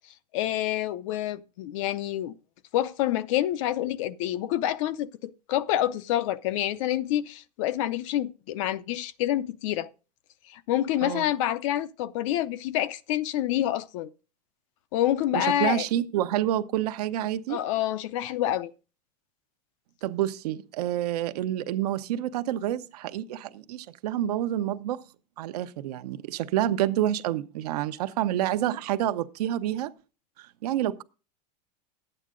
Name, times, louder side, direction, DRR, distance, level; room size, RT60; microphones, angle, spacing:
voice 1, 0.3-2.3 2.7-9.9 10.5-14.1 14.9-15.9 17.5-18.7, left 12 dB, 50° left, 0.6 m, -27 dB
voice 2, 15.3-17.6 20.0-25.0 25.4-29.9 30.4-31.0, right 12 dB, 70° right, 0.9 m, -28 dB
12.0 x 8.9 x 3.8 m
supercardioid pair, 170°, 21 cm